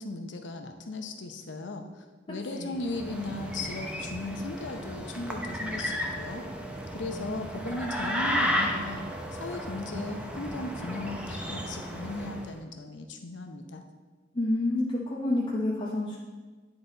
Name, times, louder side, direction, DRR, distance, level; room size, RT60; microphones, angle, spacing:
voice 1, 0.0-6.5 6.9-9.0 9.3-13.8, left 2 dB, 85° left, 6 dB, 0.7 m, -37 dB
sound 1, 2.8-12.5, equal, 5° right, 0.7 m, -34 dB
voice 2, 14.3-16.2, left 2 dB, 30° left, -6 dB, 0.8 m, -28 dB
10.0 x 4.1 x 4.0 m, 1.3 s
head